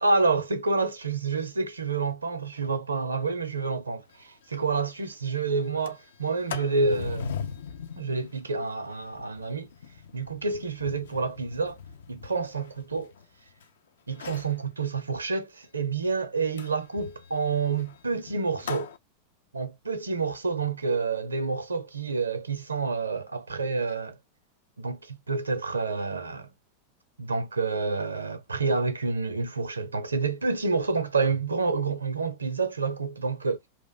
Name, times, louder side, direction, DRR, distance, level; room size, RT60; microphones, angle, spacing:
voice 1, 0.0-7.3 8.0-9.7 10.1-11.8 12.1-13.1 14.1-18.9 19.5-24.2 24.8-26.5 27.2-33.6, right 4 dB, 75° right, 0.5 m, -28 dB
Sliding door, 4.1-4.2 4.5-4.6 5.0-5.3 5.6-13.6 14.1-14.6 16.6-19.0, left 6 dB, 60° left, 0.4 m, -40 dB
2.5 x 2.0 x 3.8 m
figure-of-eight pair, 90°, 0 cm